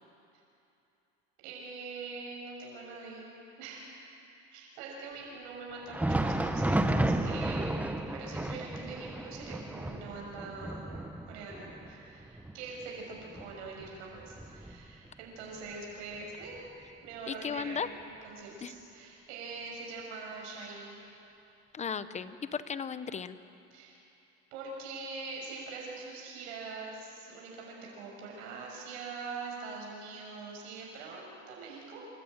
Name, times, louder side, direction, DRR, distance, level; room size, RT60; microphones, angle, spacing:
voice 1, 1.4-3.3 3.6-4.1 4.5-10.9 11.3-16.6 17.0-20.9 23.7-24.0 24.5-32.1, right 4 dB, 85° right, -2 dB, 6.2 m, -43 dB
Thunder, 5.8-15.2 15.6-15.7 16.4-16.6 17.6-17.7, right 1 dB, 5° right, 0.8 m, -33 dB
voice 2, 17.3-17.9 18.6-18.7 21.7-23.4, left 6 dB, 20° left, 13 dB, 0.9 m, -35 dB
27.5 x 14.5 x 9.0 m, 2.9 s
supercardioid pair, 120°, 32 cm